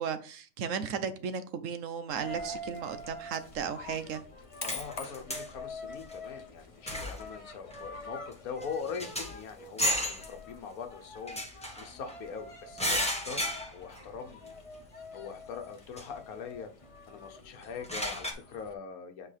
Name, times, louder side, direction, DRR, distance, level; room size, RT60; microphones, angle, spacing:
voice 1, 0.0-4.2, right 7 dB, 70° right, 11 dB, 1.0 m, -35 dB
Coin (dropping), 2.1-18.7, left 1 dB, 30° left, 0.7 m, -46 dB
sound 1, 4.1-4.2 4.6-5.5 6.0-6.1 6.9-7.3 7.7-7.9 8.3-8.4 8.6-9.4 9.8-10.3 11.3-12.2 12.8-14.0 14.5-14.6 16.0-16.1 17.6-18.3, equal, 5° left, 1.2 m, -33 dB
voice 2, 4.6-14.5 15.1-16.7 17.1-19.3, left 6 dB, 85° left, 7 dB, 1.3 m, -42 dB
7.5 x 4.5 x 3.3 m, 0.39 s
omnidirectional pair, 1.5 m